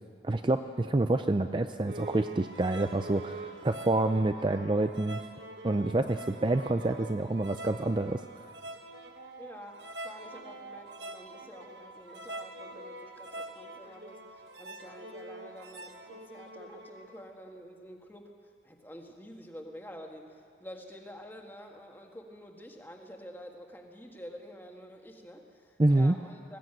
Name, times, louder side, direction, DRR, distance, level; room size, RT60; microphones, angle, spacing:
voice 1, 0.2-5.2 5.6-8.2 25.8-26.2, right 2 dB, 25° right, 8 dB, 0.5 m, -27 dB
sound 1, 1.9-17.2, right 2 dB, 65° right, 1.5 m, -45 dB
voice 2, 9.4-26.6, equal, 10° left, 2 dB, 1.7 m, -48 dB
20.0 x 16.0 x 9.2 m, 2.2 s
head